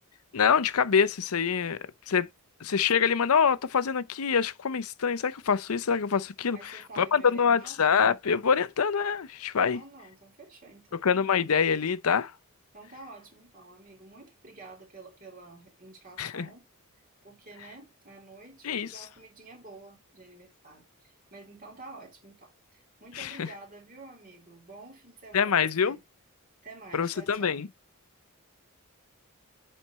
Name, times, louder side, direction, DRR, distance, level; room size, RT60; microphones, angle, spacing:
voice 1, 0.3-1.8 2.1-2.3 2.6-9.8 11.0-12.3 16.2-16.5 18.6-19.0 23.2-23.5 25.3-26.0 26.9-27.7, left 6 dB, 80° left, 0.6 m, -25 dB
voice 2, 6.5-7.8 9.7-11.1 12.7-16.7 17.2-26.0 26.6-27.6, right 3 dB, 40° right, 3.3 m, -49 dB
10.0 x 4.4 x 3.1 m
head